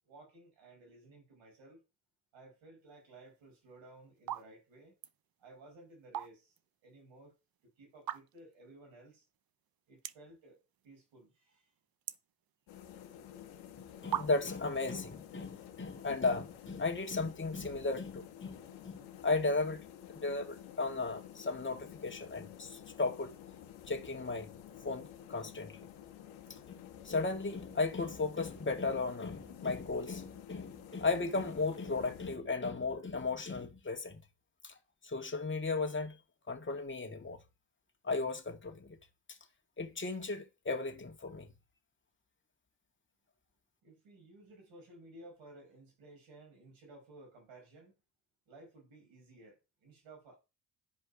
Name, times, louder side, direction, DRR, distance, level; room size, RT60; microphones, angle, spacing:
voice 1, 0.0-1.8 2.3-4.9 5.4-6.6 6.8-7.4 7.6-9.2 9.9-11.7 43.8-47.9 48.5-50.4, right 2 dB, 80° right, 6.2 m, -56 dB
sound 1, 3.4-3.7 4.2-4.5 4.8-5.2 5.9-6.6 7.0-7.1 8.0-8.5 9.1-9.2 9.4-9.5 10.0-10.4 10.7-11.2 11.5-12.9 13.6-13.7 14.1-14.7, right 11 dB, 50° right, 0.8 m, -39 dB
sound 2, 12.7-32.4, left 10 dB, 80° left, 1.4 m, -51 dB
voice 2, 14.0-23.3 23.9-24.5 24.8-25.9 26.5-34.2 34.6-34.8 35.0-36.2 36.5-37.4 38.0-39.0 39.3-39.4 39.8-41.5, left 3 dB, 25° left, 2.1 m, -35 dB
10.5 x 5.1 x 5.2 m
hypercardioid pair, 50°, 46 cm